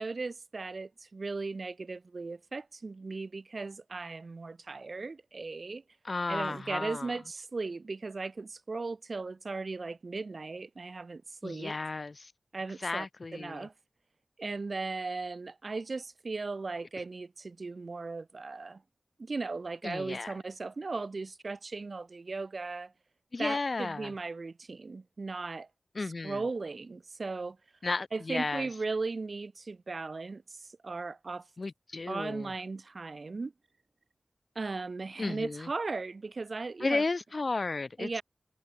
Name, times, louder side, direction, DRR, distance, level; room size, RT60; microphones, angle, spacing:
voice 1, 0.0-5.8 6.3-11.8 12.5-13.1 13.3-13.7 14.4-18.8 19.2-22.9 23.4-25.7 26.2-27.6 28.1-31.5 32.1-33.5 34.5-37.0 38.0-38.2, right 3 dB, 60° right, 2.6 m, -37 dB
voice 2, 6.0-7.1 11.4-12.3 12.8-13.7 19.8-20.3 23.3-24.1 25.9-26.4 27.8-28.7 31.6-32.5 35.2-35.7 36.8-38.2, left 3 dB, 55° left, 1.3 m, -33 dB
wide cardioid pair, 65°, 0 cm